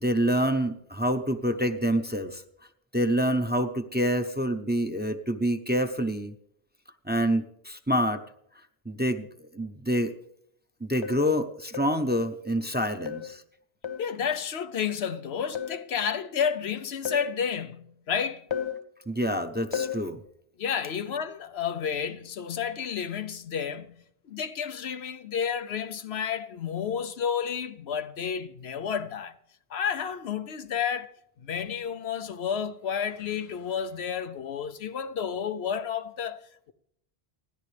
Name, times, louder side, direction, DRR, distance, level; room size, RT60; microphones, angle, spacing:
voice 1, 0.0-2.4 2.9-6.3 7.1-8.2 8.9-10.1 10.8-13.4 19.1-20.2, equal, 10° right, 0.8 m, -27 dB
sound 1, 11.0-11.3 11.7-12.0 13.1-13.4 13.8-14.2 15.6-15.9 17.1-17.4 18.5-18.8 19.7-20.1, left 8 dB, 30° left, 0.8 m, -33 dB
voice 2, 14.0-18.5 20.6-29.4 29.7-31.1 31.4-36.7, left 7 dB, 80° left, 1.0 m, -31 dB
30.0 x 11.0 x 3.4 m
omnidirectional pair, 1.1 m